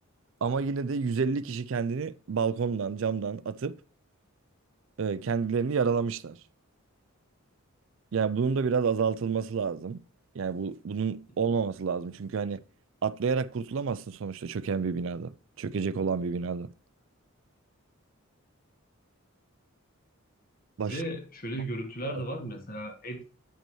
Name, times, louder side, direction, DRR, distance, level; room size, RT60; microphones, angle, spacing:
voice 1, 0.4-3.7 5.0-6.4 8.1-10.0 10.3-12.6 13.0-16.7 20.8-21.0, right 5 dB, 60° right, 0.4 m, -29 dB
voice 2, 20.9-23.2, right 1 dB, 40° left, 1.7 m, -35 dB
8.8 x 5.2 x 3.1 m
head